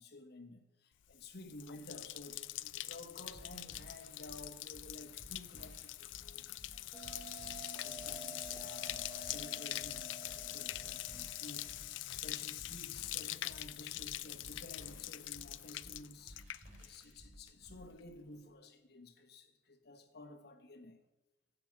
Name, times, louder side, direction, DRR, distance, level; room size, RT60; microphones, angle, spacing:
voice 1, 0.0-7.3 7.8-21.0, left 2 dB, 55° left, 1.3 m, -53 dB
Bathtub (filling or washing), 1.1-17.2 17.5-18.0, left 16 dB, 80° left, 0.4 m, -44 dB
sound 1, 3.2-17.9, equal, 40° right, 5.0 m, -57 dB
Bell, 6.9-12.0, right 2 dB, 5° left, 2.0 m, -51 dB
10.5 x 8.0 x 7.4 m
head